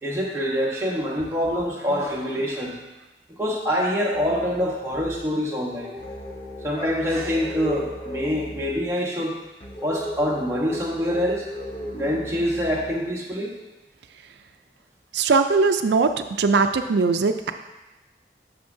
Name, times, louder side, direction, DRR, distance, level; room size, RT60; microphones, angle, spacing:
voice 1, 0.0-2.8 3.4-6.0 6.6-9.4 9.8-11.5 11.9-13.5, equal, 15° right, -3 dB, 1.1 m, -25 dB
sound 1, 4.1-4.8 5.7-8.9 9.6-13.1, equal, 30° left, 0.7 m, -36 dB
voice 2, 15.1-16.1 16.4-17.5, right 4 dB, 80° right, 7 dB, 0.4 m, -20 dB
9.2 x 6.1 x 2.7 m, 1.1 s
head